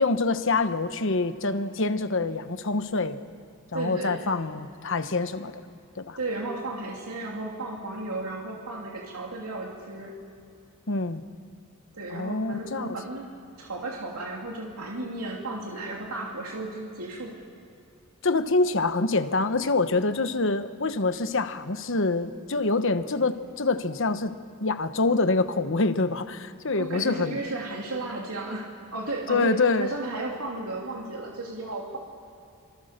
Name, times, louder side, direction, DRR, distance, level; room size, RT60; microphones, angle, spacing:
voice 1, 0.0-3.2 3.7-5.6 6.0-6.2 10.9-11.2 12.1-12.9 18.2-24.3 24.6-27.4 29.3-29.9, left 3 dB, 60° left, 10 dB, 1.1 m, -26 dB
voice 2, 3.7-4.2 6.2-10.1 11.9-13.3 13.6-17.3 26.7-32.0, right 2 dB, 85° right, -1 dB, 3.0 m, -34 dB
26.5 x 25.0 x 6.7 m, 2.6 s
head